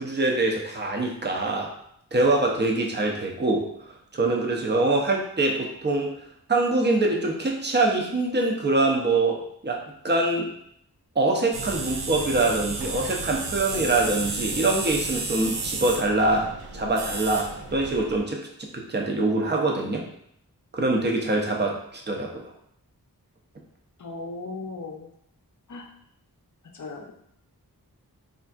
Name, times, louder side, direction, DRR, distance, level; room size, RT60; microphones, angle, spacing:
voice 1, 0.0-1.7 2.1-3.7 4.1-6.1 6.5-10.5 11.2-20.0 20.7-22.4, right 2 dB, 30° right, 0 dB, 0.5 m, -24 dB
sound 1, 11.5-18.2, right 3 dB, 80° right, 0.5 m, -32 dB
voice 2, 24.0-25.1 25.7-25.9 26.7-27.1, left 3 dB, 50° left, 2 dB, 0.5 m, -37 dB
3.4 x 2.5 x 2.4 m, 0.71 s
wide cardioid pair, 60°, 38 cm